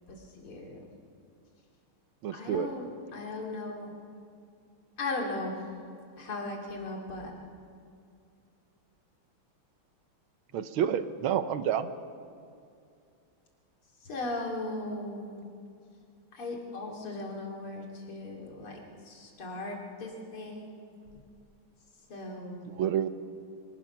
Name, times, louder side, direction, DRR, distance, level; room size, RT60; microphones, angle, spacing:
voice 1, 0.1-0.9 2.3-3.9 5.0-5.5 6.2-7.3 14.0-15.5 16.3-20.9 22.1-22.8, left 2 dB, 80° left, 0 dB, 3.7 m, -38 dB
voice 2, 2.2-2.7 10.5-11.9 22.7-23.1, right 9 dB, 75° right, 11 dB, 1.6 m, -29 dB
24.5 x 19.0 x 5.8 m, 2.4 s
omnidirectional pair, 2.4 m